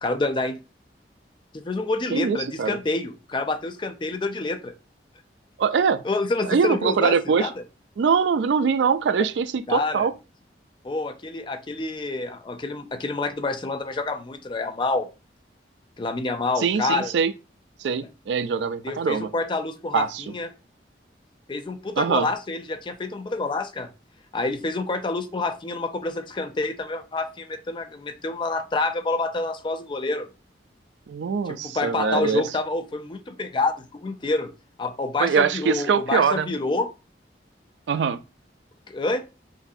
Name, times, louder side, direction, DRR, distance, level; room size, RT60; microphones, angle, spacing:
voice 1, 0.0-0.6 1.5-4.7 6.0-7.5 9.2-9.3 9.7-10.1 10.8-15.1 16.0-17.1 18.8-20.5 21.5-23.9 24.3-30.3 31.5-34.5 34.8-36.9 38.9-39.2, left 3 dB, 25° left, 0.4 m, -27 dB
voice 2, 2.1-2.8 5.6-6.0 6.4-7.5 8.0-10.1 16.6-17.3 17.8-19.3 19.9-20.2 22.0-22.3 31.1-32.4 35.2-36.5 37.9-38.2, right 6 dB, 90° right, 0.4 m, -23 dB
5.1 x 2.6 x 2.6 m
head